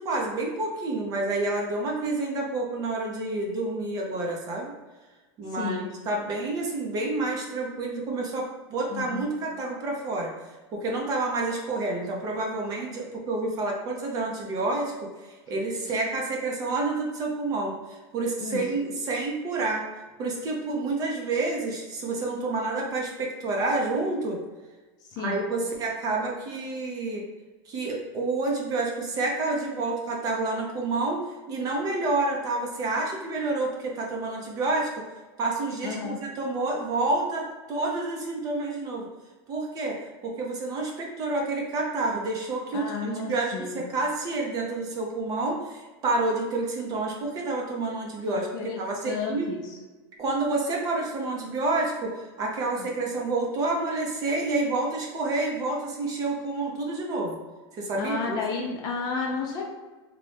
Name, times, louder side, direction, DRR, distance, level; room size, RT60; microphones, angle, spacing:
voice 1, 0.0-4.7 5.4-10.3 10.7-14.9 15.2-19.9 20.2-24.4 25.2-27.2 27.7-31.2 31.5-34.9 35.4-39.1 39.5-49.5 50.2-57.4 57.8-58.4, right 2 dB, 25° right, 0 dB, 0.6 m, -29 dB
voice 2, 5.5-5.9 8.9-9.3 18.4-18.6 25.1-25.4 35.8-36.2 42.7-43.8 48.3-48.8 49.1-49.6 52.8-52.9 58.0-59.6, left 5 dB, 30° left, 0 dB, 0.5 m, -32 dB
4.0 x 2.2 x 3.3 m, 1.2 s
supercardioid pair, 160°, 13 cm